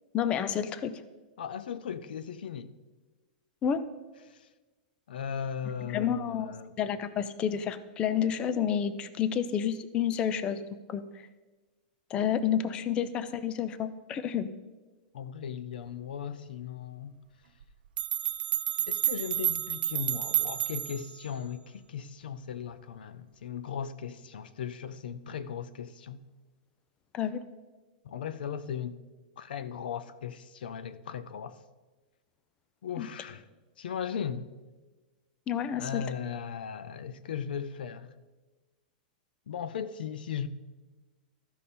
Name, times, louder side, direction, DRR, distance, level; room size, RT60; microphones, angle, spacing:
voice 1, 0.1-1.0 3.6-3.9 5.9-11.1 12.1-14.5 27.1-27.4 33.0-33.1 35.5-36.0, left 8 dB, 20° left, 0.4 m, -30 dB
voice 2, 1.4-2.7 4.3-4.5 5.1-6.8 15.1-17.2 18.9-26.2 28.0-29.0 29.4-31.6 32.8-33.5 33.8-34.5 35.8-38.1 39.5-40.5, left 8 dB, 90° left, 0.6 m, -37 dB
sound 1, 17.6-17.7 18.0-21.1, right 11 dB, 85° right, 0.5 m, -30 dB
14.0 x 5.3 x 4.3 m
supercardioid pair, 160°, 5 cm